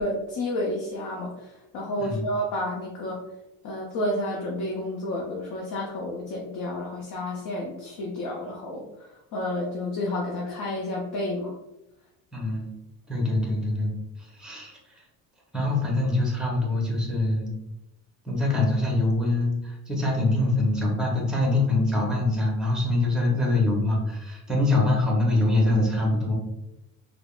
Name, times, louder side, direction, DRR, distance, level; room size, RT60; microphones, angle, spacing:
voice 1, 0.0-3.2 3.6-11.6, left 1 dB, 60° left, -2 dB, 0.6 m, -30 dB
voice 2, 12.3-12.7 13.1-13.9 14.2-15.0 15.5-17.5 18.2-26.3, left 2 dB, ahead, -1 dB, 0.7 m, -24 dB
3.3 x 2.0 x 2.3 m, 0.92 s
cardioid pair, 120°, 35 cm